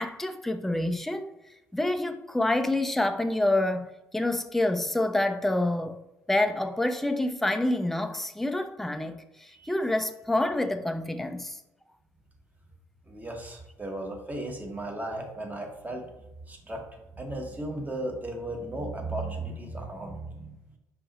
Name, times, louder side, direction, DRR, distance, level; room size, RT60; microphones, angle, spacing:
voice 1, 0.0-1.3 1.7-6.0 6.3-11.6, left 1 dB, 5° left, 0.4 m, -27 dB
voice 2, 13.1-16.1 16.5-20.6, right 1 dB, 20° right, 1.1 m, -35 dB
4.5 x 2.8 x 4.2 m
figure-of-eight pair, 50°, 9 cm